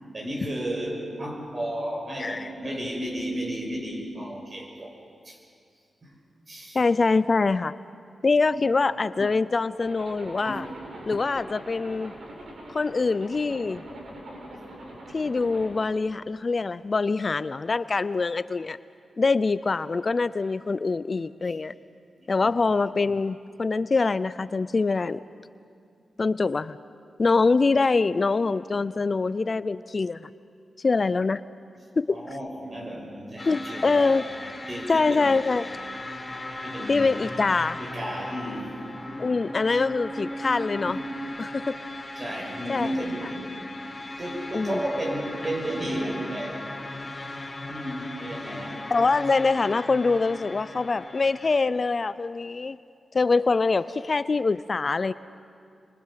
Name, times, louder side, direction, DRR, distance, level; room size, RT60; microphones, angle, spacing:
voice 1, 0.1-5.0 5.2-5.4 6.0-6.2 6.5-6.8 8.5-8.8 10.4-10.8 14.5-14.6 21.4-21.6 22.2-22.5 32.1-34.2 34.7-35.4 36.6-37.1 37.8-38.8 40.8-41.1 42.1-43.6 44.2-46.8 47.7-48.9, right 1 dB, 45° right, 0 dB, 6.8 m, -33 dB
voice 2, 2.2-2.5 6.7-7.7 8.2-10.7 11.1-12.1 12.7-13.8 15.1-18.8 19.2-21.7 22.3-25.2 26.2-26.8 27.2-30.3 30.8-31.4 32.0-32.2 33.5-34.2 34.9-35.7 36.9-37.8 39.2-41.0 41.4-41.8 42.7-42.9 44.5-44.8 48.9-52.8 53.1-55.1, left 4 dB, 45° left, 15 dB, 0.5 m, -24 dB
Zipper (clothing), 9.8-15.7, right 1 dB, 80° right, 5.8 m, -42 dB
sound 1, 33.4-51.6, left 1 dB, 30° left, 3.9 m, -37 dB
29.5 x 24.5 x 5.9 m, 2.4 s
cardioid pair, 60°, 0 cm